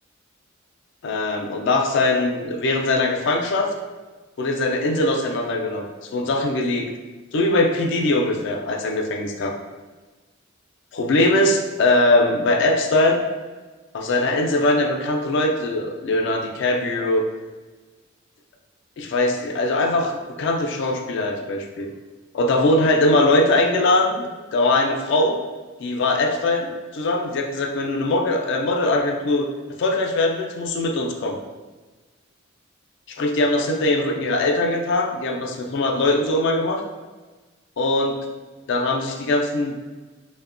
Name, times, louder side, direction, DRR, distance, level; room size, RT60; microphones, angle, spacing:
voice 1, 1.0-3.7 4.4-5.8 6.1-6.9 7.3-9.5 10.9-13.2 13.9-17.2 19.0-21.9 22.3-25.4 25.8-29.5 29.8-31.4 33.1-36.8 37.8-38.1 38.7-39.7, left 2 dB, 65° left, 2 dB, 0.3 m, -21 dB
2.8 x 2.1 x 2.4 m, 1.3 s
head